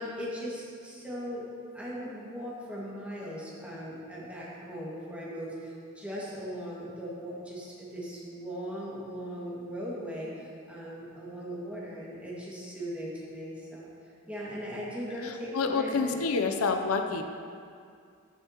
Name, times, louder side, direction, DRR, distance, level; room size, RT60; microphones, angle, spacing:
voice 1, 0.0-13.9 14.3-16.5, equal, 5° right, -7 dB, 1.9 m, -39 dB
voice 2, 15.2-17.2, left 4 dB, 85° left, 5 dB, 0.6 m, -28 dB
14.0 x 7.2 x 2.9 m, 2.3 s
head